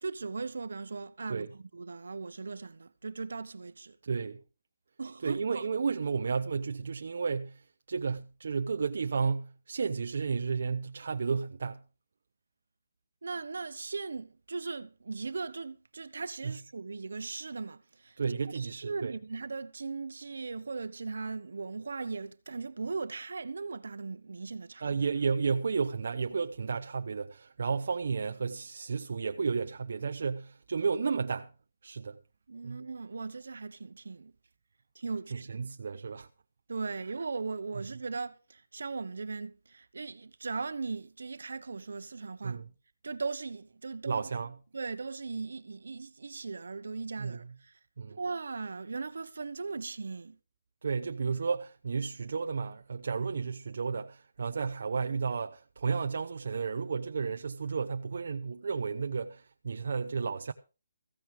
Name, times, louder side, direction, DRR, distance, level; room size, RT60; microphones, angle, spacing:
voice 1, 0.0-4.0 5.0-5.6 13.2-18.2 18.5-24.9 32.5-34.3 34.9-35.7 36.7-42.6 43.0-44.2 44.7-47.8 48.2-50.4, right 4 dB, 80° right, 1.1 m, -38 dB
voice 2, 4.0-4.4 5.2-7.6 7.9-11.8 16.4-16.6 18.2-19.1 24.8-31.5 31.8-32.2 32.6-32.8 35.3-36.3 42.4-42.7 44.1-44.5 47.2-47.4 48.0-48.2 50.8-60.5, right 5 dB, 65° right, 0.7 m, -32 dB
15.0 x 9.2 x 4.9 m
hypercardioid pair, 165°, 0 cm